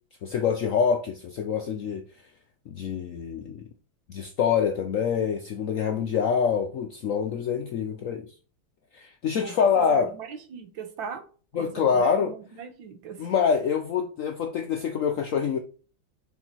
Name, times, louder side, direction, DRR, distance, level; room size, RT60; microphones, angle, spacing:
voice 1, 0.2-2.0 2.7-3.7 4.1-8.3 8.9-10.1 11.5-12.3 13.2-15.6, left 6 dB, 75° left, 0.7 m, -25 dB
voice 2, 9.4-11.2 11.6-13.3, right 6 dB, 90° right, 1.8 m, -39 dB
6.3 x 3.5 x 4.4 m
omnidirectional pair, 2.0 m